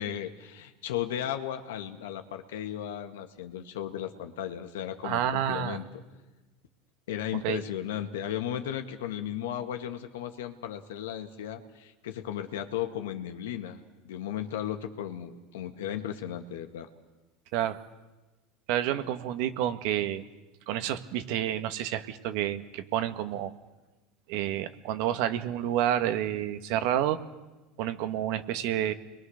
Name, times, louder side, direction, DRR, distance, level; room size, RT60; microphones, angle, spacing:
voice 1, 0.0-5.8 7.1-16.9, left 10 dB, 90° left, 6 dB, 1.9 m, -35 dB
voice 2, 5.0-5.8 7.4-7.6 17.5-17.8 18.7-20.2 20.7-23.5 24.3-27.2 27.8-28.9, right 11 dB, 65° right, 9 dB, 1.7 m, -29 dB
29.5 x 22.5 x 6.6 m, 1.1 s
supercardioid pair, 115°, 0 cm